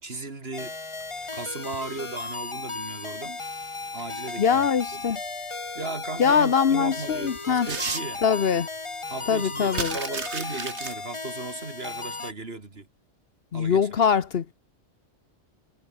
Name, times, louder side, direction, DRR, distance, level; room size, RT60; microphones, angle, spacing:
voice 1, 0.0-0.8 1.3-3.4 3.9-4.7 4.9-5.1 5.7-8.2 9.1-12.9 13.5-13.9, right 3 dB, 60° right, 3.0 m, -36 dB
sound 1, 0.5-12.3, left 3 dB, 25° left, 1.3 m, -36 dB
paper crumble rip, 1.0-2.0 3.6-4.3 4.9-5.0 6.2-6.3 6.7-8.6 8.9-9.0 9.2-10.9, right 4 dB, 75° right, 2.2 m, -34 dB
voice 2, 4.4-5.2 6.2-7.7 8.2-8.7 9.3-10.0 13.5-14.5, left 7 dB, 60° left, 1.1 m, -22 dB
omnidirectional pair, 1.2 m